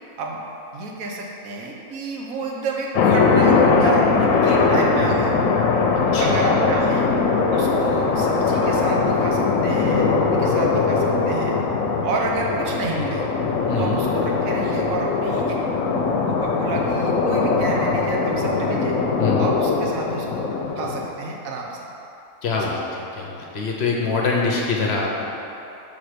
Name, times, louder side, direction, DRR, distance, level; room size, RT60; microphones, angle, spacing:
voice 1, 0.7-5.4 6.1-7.1 7.5-11.6 12.0-13.2 13.8-15.6 16.3-18.9 19.4-20.4 20.8-21.9 22.6-22.7, right 3 dB, 80° right, -1 dB, 1.2 m, -29 dB
sound 1, 2.9-21.0, left 4 dB, 80° left, 1.0 m, -20 dB
voice 2, 5.9-6.4 13.7-14.0 19.2-19.5 22.4-25.2, left 4 dB, 60° left, -2 dB, 0.8 m, -24 dB
6.1 x 3.5 x 5.0 m, 2.9 s
omnidirectional pair, 1.4 m